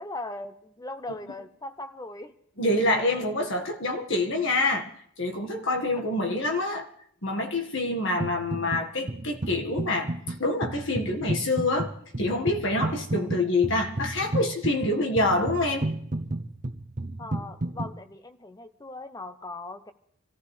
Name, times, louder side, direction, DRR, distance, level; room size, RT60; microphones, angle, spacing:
voice 1, 0.0-2.3 3.1-3.2 6.0-6.1 17.2-19.9, left 2 dB, 15° left, 0.7 m, -39 dB
voice 2, 2.6-4.9 5.2-6.9 7.2-11.9 12.2-15.9, left 2 dB, 55° left, 1.7 m, -26 dB
sound 1, 8.2-8.8 9.1-17.9, right 1 dB, 35° right, 0.7 m, -32 dB
27.0 x 14.5 x 3.3 m
head